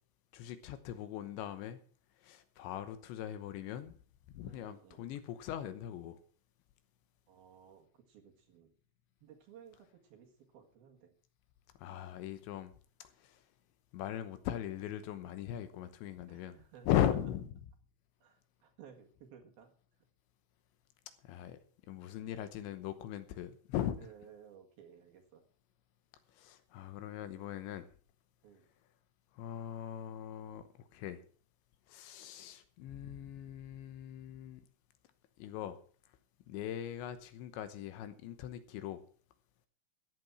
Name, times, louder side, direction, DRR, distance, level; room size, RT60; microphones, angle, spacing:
voice 1, 0.3-1.8 2.2-4.0 4.3-6.2 11.8-12.7 13.0-13.5 13.9-16.6 16.9-17.5 21.2-21.6 21.9-24.0 26.3-27.9 29.3-31.2 31.9-34.6 35.4-35.8 36.5-39.0, left 11 dB, 75° left, 11 dB, 3.1 m, -39 dB
voice 2, 4.4-5.1 7.3-8.7 9.2-11.1 16.3-17.0 18.2-19.7 24.0-25.4 28.4-28.7, right 8 dB, 60° right, 4 dB, 3.2 m, -57 dB
14.0 x 9.5 x 6.0 m, 0.43 s
omnidirectional pair, 5.6 m